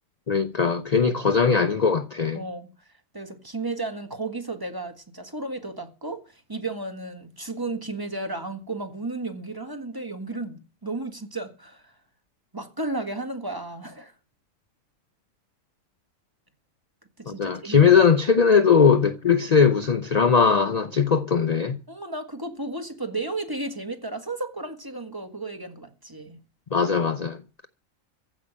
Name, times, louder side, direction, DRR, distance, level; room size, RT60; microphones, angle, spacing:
voice 1, 0.3-2.4 17.3-21.8 26.7-27.4, left 6 dB, 40° left, 0.6 m, -20 dB
voice 2, 2.3-2.7 3.1-11.9 12.5-14.1 17.2-18.2 21.9-26.4, right 2 dB, 15° right, 1.6 m, -33 dB
15.5 x 5.9 x 9.8 m
omnidirectional pair, 1.4 m